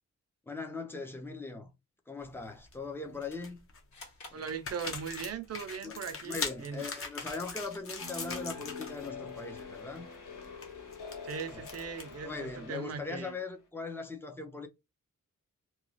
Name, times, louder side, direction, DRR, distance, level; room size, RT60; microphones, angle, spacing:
voice 1, 0.5-1.7 2.1-3.6 4.3-4.4 5.8-10.1 11.5-11.6 12.2-14.7, left 3 dB, 5° left, 0.5 m, -40 dB
sound 1, 2.3-2.7 3.2-3.8 4.4-9.1 9.3-9.6 10.0-12.2, left 5 dB, 45° left, 0.8 m, -41 dB
sound 2, 3.9-5.3, left 3 dB, 65° left, 1.6 m, -52 dB
voice 2, 4.3-6.8 11.2-13.3, right 6 dB, 50° right, 0.5 m, -39 dB
sound 3, 8.0-13.3, left 5 dB, 80° left, 0.9 m, -45 dB
3.0 x 2.3 x 2.6 m
wide cardioid pair, 170°, 31 cm